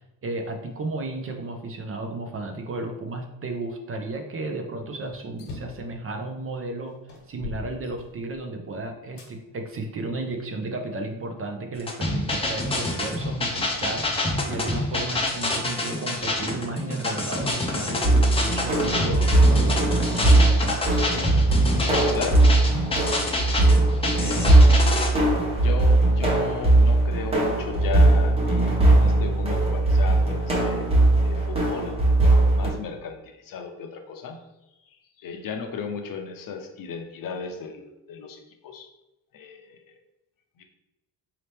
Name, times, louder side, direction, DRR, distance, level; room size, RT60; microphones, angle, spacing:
voice 1, 0.0-7.0 7.3-20.6, right 2 dB, 35° right, 4 dB, 0.5 m, -33 dB
sound 1, 5.4-5.9 6.5-6.6 7.1-8.5 9.2-9.3 10.0-11.1, left 3 dB, 85° left, 1.2 m, -40 dB
sound 2, 11.8-25.1, left 2 dB, 15° left, 0.6 m, -27 dB
sound 3, 18.0-32.7, right 2 dB, 15° right, 1.0 m, -19 dB
voice 2, 21.8-22.5 22.9-23.2 24.1-24.8 25.5-30.9 31.2-32.0 32.4-34.4 34.9-38.9 39.3-40.0 40.6-40.7, left 6 dB, 55° left, 4 dB, 0.7 m, -36 dB
4.1 x 2.9 x 3.3 m, 0.95 s
cardioid pair, 125°, 41 cm